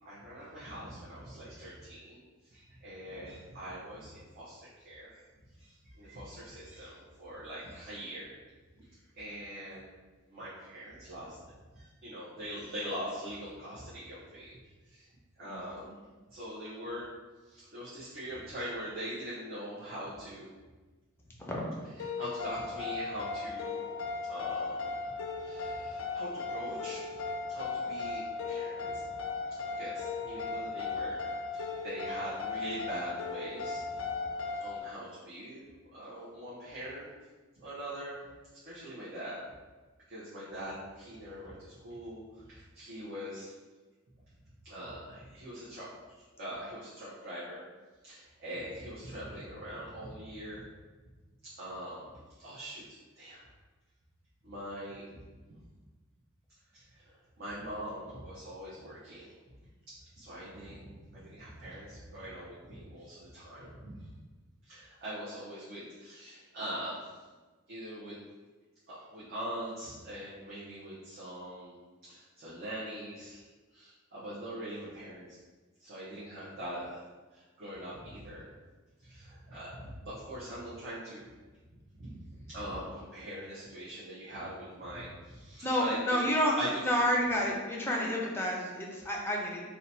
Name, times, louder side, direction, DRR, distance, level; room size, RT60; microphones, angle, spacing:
voice 1, 0.0-5.2 5.6-8.3 9.1-9.9 10.3-11.4 11.7-14.6 14.9-15.1 15.4-15.9 16.3-17.1 17.4-20.5 22.0-23.8 24.3-24.9 25.3-27.2 27.5-29.0 29.8-31.2 31.5-34.0 34.6-37.1 37.6-38.1 38.6-39.4 40.1-43.5 44.6-45.9 46.4-47.6 48.0-50.6 51.4-53.4 54.4-55.2 56.7-59.3 60.2-64.1 64.6-67.2 67.7-68.2 68.9-75.4 75.8-77.0 77.3-78.5 79.0-81.2 81.7-86.3 86.6-86.8, equal, 50° right, -10 dB, 0.8 m, -42 dB
voice 2, 15.4-15.9 21.4-21.7 85.6-86.6 86.8-89.6, equal, 10° left, -2 dB, 0.5 m, -30 dB
sound 1, 22.0-34.8, left 4 dB, 80° left, 0.4 m, -37 dB
2.8 x 2.2 x 4.1 m, 1.3 s
head